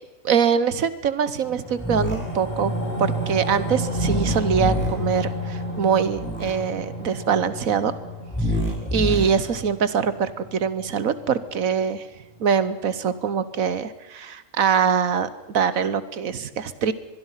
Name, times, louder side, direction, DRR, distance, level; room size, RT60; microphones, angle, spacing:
voice 1, 0.2-2.7 3.0-7.9 8.5-8.6 8.9-12.1 12.4-16.9, right 7 dB, 80° right, 14 dB, 1.5 m, -23 dB
sound 1, 1.4-12.0 12.3-12.4, equal, 30° left, 8.3 m, -31 dB
sound 2, 1.8-2.2 3.9-4.9 6.1-6.5 8.3-9.2, left 1 dB, 10° left, 6.2 m, -26 dB
24.0 x 21.0 x 5.7 m, 1.0 s
omnidirectional pair, 1.4 m